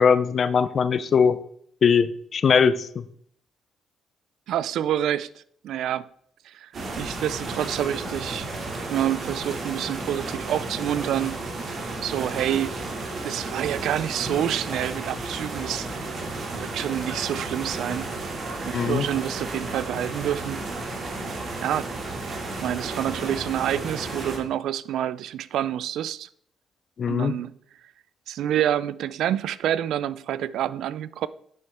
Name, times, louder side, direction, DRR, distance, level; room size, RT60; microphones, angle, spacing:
voice 1, 0.0-1.4 1.8-3.0 18.7-19.1 27.0-27.4, left 6 dB, 50° left, 0.6 m, -20 dB
voice 2, 4.5-6.0 6.4-6.7 7.0-8.5 8.9-11.4 12.0-12.8 13.2-16.2 16.5-18.1 18.6-20.6 21.1-21.2 21.6-21.9 22.6-26.3 27.1-27.5 28.3-31.3, right 11 dB, 80° right, 0.4 m, -28 dB
sound 1, 6.7-24.4, right 2 dB, 50° right, 2.5 m, -33 dB
9.5 x 6.9 x 3.6 m
cardioid pair, 90°, 0 cm